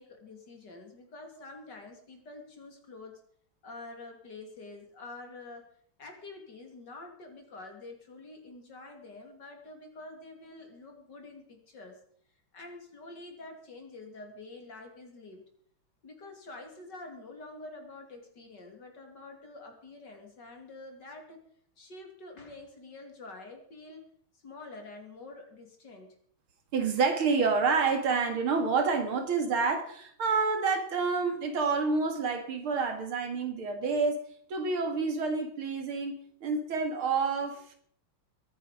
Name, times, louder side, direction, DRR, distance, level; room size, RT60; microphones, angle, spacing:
voice 1, 0.0-3.1 3.6-5.6 6.0-12.0 12.5-15.5 16.0-21.4 21.8-24.0 24.4-26.2, left 2 dB, 50° left, 3 dB, 3.4 m, -47 dB
voice 2, 26.7-34.2 34.5-36.1 36.4-37.6, right 4 dB, 75° right, 6 dB, 2.9 m, -28 dB
22.0 x 9.3 x 5.1 m, 0.62 s
omnidirectional pair, 2.3 m